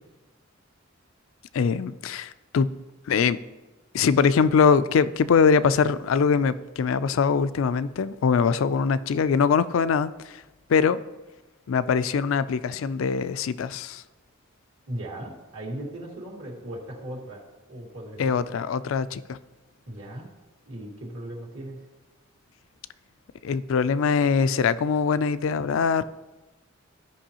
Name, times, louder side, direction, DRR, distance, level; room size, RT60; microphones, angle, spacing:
voice 1, 1.5-2.7 3.1-3.4 3.9-10.4 10.7-11.0 11.7-14.0 18.2-19.4 23.4-26.0, left 6 dB, 75° left, 15 dB, 0.4 m, -22 dB
voice 2, 14.9-17.4 17.7-18.4 19.9-20.3 20.7-21.8, right 1 dB, 80° right, -3 dB, 2.0 m, -37 dB
14.0 x 5.4 x 2.9 m, 1.1 s
head